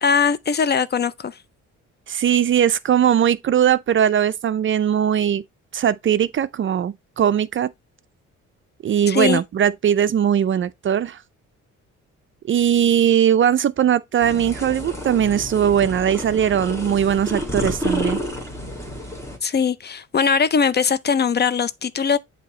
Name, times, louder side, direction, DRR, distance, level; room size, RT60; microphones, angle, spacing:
voice 1, 0.0-1.4 9.1-9.4 19.4-22.2, left 6 dB, 35° left, 0.5 m, -20 dB
voice 2, 2.1-5.4 5.7-7.7 8.8-11.2 12.4-18.2, right 9 dB, 40° right, 0.4 m, -19 dB
sound 1, 14.2-19.4, equal, 10° left, 1.8 m, -29 dB
7.9 x 2.9 x 4.2 m
cardioid pair, 90°, 30 cm